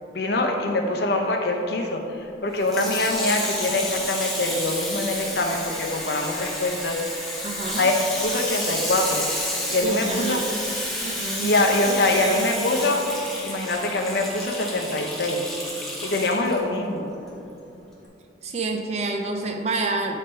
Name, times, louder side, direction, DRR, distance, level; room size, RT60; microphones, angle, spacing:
voice 1, 0.1-7.0 7.8-9.3 9.7-10.4 11.4-13.0 13.4-15.4 16.0-17.1, left 2 dB, 55° left, 2 dB, 0.6 m, -24 dB
Water tap faucet / Sink (filling or washing), 2.6-16.6 17.3-17.4, left 1 dB, ahead, 0.8 m, -31 dB
voice 2, 7.4-7.9 9.8-10.5 11.0-11.6 11.9-12.7 18.4-20.2, right 3 dB, 35° right, 3 dB, 0.4 m, -28 dB
8.5 x 3.3 x 4.3 m, 2.9 s
head